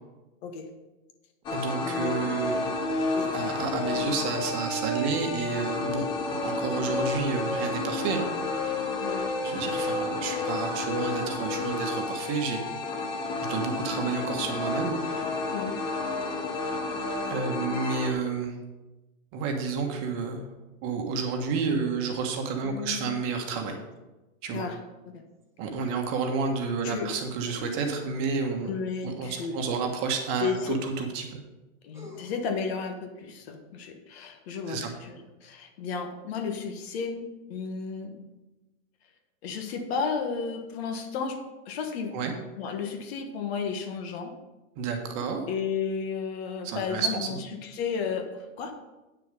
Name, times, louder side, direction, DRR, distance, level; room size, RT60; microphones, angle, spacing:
sound 1, 1.5-18.1, left 3 dB, 10° left, 0.5 m, -30 dB
voice 1, 1.5-2.6 3.3-8.3 9.3-12.6 13.4-15.0 17.3-18.5 19.3-20.4 20.8-23.8 24.4-24.7 25.6-28.7 29.0-31.4 34.7-34.9 42.1-42.3 44.8-45.5 46.6-47.4, right 5 dB, 35° right, 3 dB, 1.4 m, -30 dB
voice 2, 22.6-23.1 24.5-24.8 25.0-25.2 26.8-27.1 28.7-29.6 30.4-30.8 31.8-38.2 39.4-41.4 41.6-42.3 42.6-44.3 45.5-48.7, left 5 dB, 50° left, 5 dB, 1.5 m, -33 dB
sound 2, 25.4-25.5 27.5-28.5 30.3-30.4 31.9-32.7, equal, 5° right, 1.6 m, -46 dB
9.1 x 6.6 x 5.2 m, 1.1 s
hypercardioid pair, 150°, 41 cm